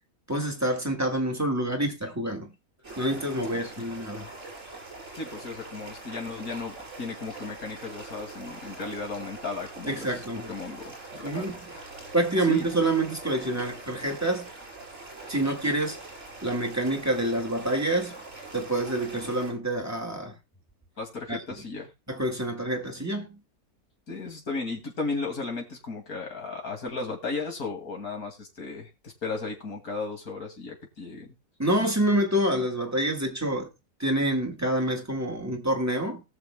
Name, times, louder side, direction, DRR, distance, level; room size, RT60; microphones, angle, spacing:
voice 1, 0.3-2.5 3.0-4.3 9.9-10.5 11.2-11.6 12.1-14.5 15.3-16.0 16.4-18.2 18.5-20.3 21.3-21.4 22.1-23.4 31.6-33.7 34.0-36.2, right 1 dB, 10° right, 1.9 m, -27 dB
sound 1, 2.8-19.5, right 3 dB, 50° right, 5.8 m, -43 dB
voice 2, 3.5-3.9 5.1-10.1 10.5-11.8 12.5-12.7 21.0-21.9 24.1-31.3, left 3 dB, 75° left, 2.9 m, -35 dB
19.5 x 6.5 x 2.3 m
omnidirectional pair, 1.6 m